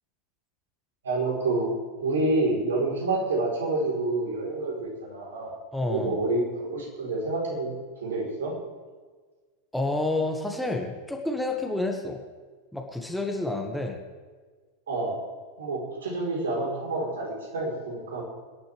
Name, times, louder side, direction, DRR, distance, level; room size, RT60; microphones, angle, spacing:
voice 1, 1.0-1.7 2.0-5.5 5.9-7.7 8.0-8.5 14.9-15.2 15.6-18.2, right 2 dB, 65° right, -2 dB, 4.1 m, -28 dB
voice 2, 5.7-6.2 9.7-12.2 12.7-14.0, left 2 dB, ahead, 2 dB, 1.7 m, -29 dB
25.5 x 10.5 x 3.5 m, 1.4 s
figure-of-eight pair, 90°, 0 cm